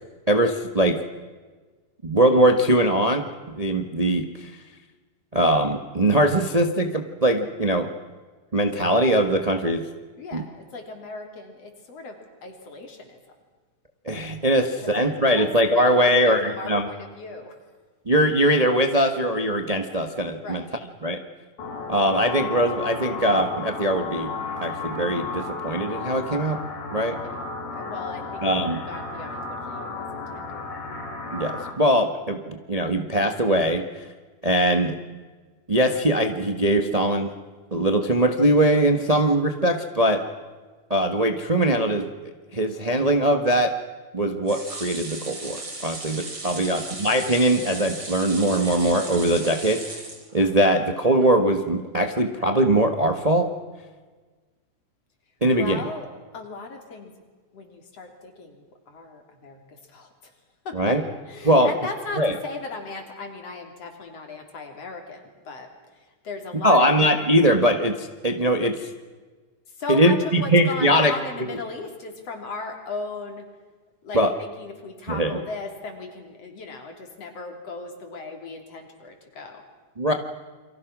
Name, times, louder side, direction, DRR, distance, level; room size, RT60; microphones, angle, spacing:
voice 1, 0.3-1.0 2.0-4.5 5.3-7.9 8.5-9.9 10.3-10.4 14.0-16.9 18.0-20.6 21.0-21.2 21.9-24.3 24.6-26.6 26.9-27.2 28.4-28.8 31.3-34.0 34.4-35.0 35.7-37.3 37.7-40.2 40.9-42.1 42.5-43.7 44.1-50.0 50.3-53.5 55.4-55.8 60.7-61.0 61.4-61.7 62.2-62.3 66.6-68.9 69.9-71.1 74.1-74.3 75.1-75.4 80.0-80.1, right 1 dB, 70° right, 6 dB, 0.3 m, -21 dB
voice 2, 10.2-13.2 14.8-17.6 20.4-20.7 27.2-27.4 27.7-30.7 46.5-46.7 55.6-56.1 56.3-57.1 57.5-60.3 60.6-61.0 61.3-65.7 65.9-66.9 69.7-73.5 74.0-79.6, left 3 dB, 50° left, 4 dB, 4.4 m, -37 dB
sound 1, 21.6-31.7, left 4 dB, 80° left, 4.3 m, -33 dB
sound 2, 44.5-50.8 51.2-51.3 51.6-51.7, right 2 dB, 30° right, 4.9 m, -37 dB
29.5 x 24.5 x 6.2 m, 1.4 s
omnidirectional pair, 3.6 m